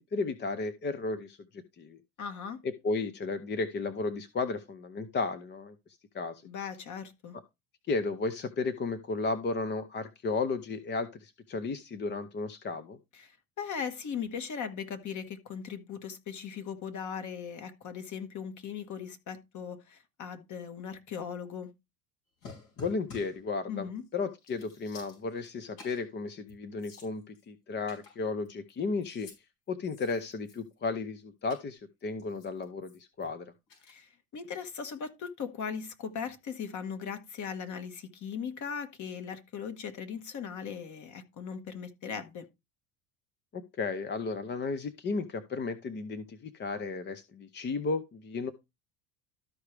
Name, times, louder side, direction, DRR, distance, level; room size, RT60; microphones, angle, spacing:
voice 1, 0.0-2.0 2.6-5.7 6.1-6.4 7.9-13.0 22.8-29.3 29.7-33.5 43.5-48.5, left 4 dB, 25° left, 0.7 m, -34 dB
voice 2, 2.2-2.6 6.4-7.3 13.2-21.7 23.7-24.0 33.9-42.5, left 7 dB, 40° left, 1.5 m, -39 dB
sound 1, 22.4-23.4 24.0-24.1 24.4-25.5 25.8-26.1 26.5-26.6 26.8-27.4 27.9-28.7 29.0-29.4 29.8-30.8 31.5-31.6 32.2-33.3 33.7-33.9, left 4 dB, 75° left, 5.2 m, -51 dB
13.0 x 4.8 x 3.3 m
supercardioid pair, 110°, 44 cm